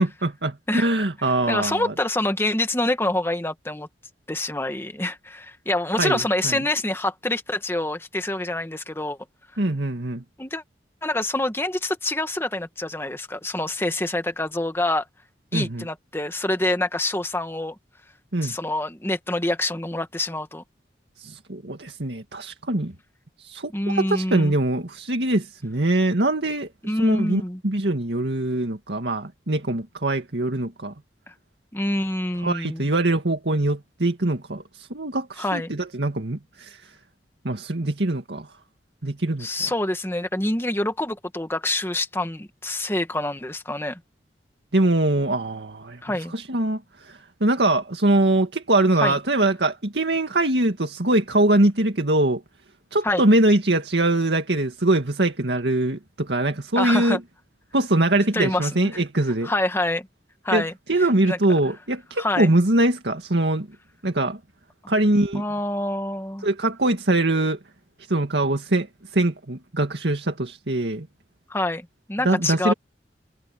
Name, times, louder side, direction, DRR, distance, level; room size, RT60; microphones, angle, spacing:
voice 1, 0.0-1.9 6.0-6.6 9.6-10.2 15.5-15.9 18.3-18.6 21.2-22.9 23.4-30.9 32.4-36.9 37.4-38.5 39.0-39.5 44.7-46.0 46.3-52.4 52.9-57.2 57.7-59.5 60.5-63.7 64.0-64.4 64.9-65.4 66.4-67.6 68.1-71.1 72.2-72.7, right 2 dB, 75° right, 2.1 m, -23 dB
voice 2, 1.5-3.9 4.3-9.2 10.4-10.6 11.0-15.1 15.5-17.8 18.4-20.6 23.7-24.5 26.8-27.6 31.7-32.9 35.4-35.7 39.4-44.0 46.0-46.3 49.0-49.2 53.0-53.2 56.8-57.2 58.3-59.0 59.4-60.1 60.4-60.7 61.2-61.6 62.2-62.5 65.3-66.5 71.5-72.7, left 1 dB, 15° left, 1.8 m, -26 dB
head